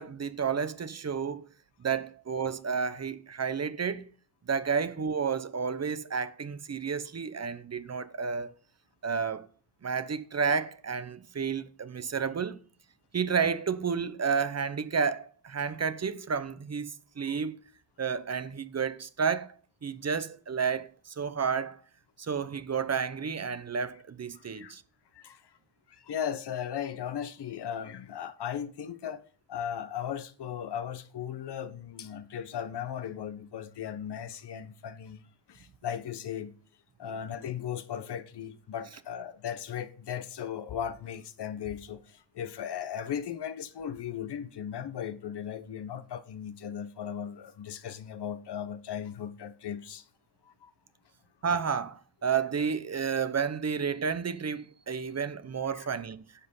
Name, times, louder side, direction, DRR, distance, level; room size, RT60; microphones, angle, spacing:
voice 1, 0.0-1.5 1.8-4.1 4.5-8.5 9.0-9.5 9.8-12.6 13.1-17.6 18.0-19.5 19.8-21.8 22.2-24.8 51.4-56.2, right 6 dB, 35° right, 0.9 m, -31 dB
voice 2, 24.3-24.7 25.1-25.6 25.9-29.2 29.5-35.2 35.5-36.5 37.0-50.0 50.6-50.7 55.7-55.9, left 9 dB, 60° left, 1.2 m, -37 dB
11.0 x 7.6 x 5.6 m
cardioid pair, 80°, 45 cm